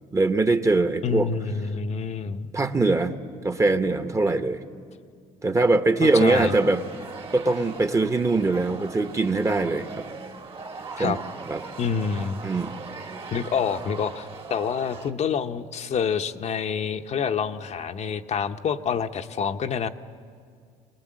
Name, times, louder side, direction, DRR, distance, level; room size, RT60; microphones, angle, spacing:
voice 1, 0.1-1.3 2.5-3.1 3.4-4.6 5.4-6.8 7.3-10.0 11.0-11.2 11.5-11.6 12.4-12.7, right 3 dB, 20° right, 9 dB, 1.0 m, -22 dB
voice 2, 1.0-2.5 6.0-6.5 11.0-11.2 11.8-12.4 13.3-19.9, left 6 dB, 45° left, 7 dB, 0.8 m, -27 dB
sound 1, 6.0-15.1, right 4 dB, 40° right, 1.6 m, -39 dB
24.0 x 19.5 x 7.6 m, 2.1 s
cardioid pair, 95°, 15 cm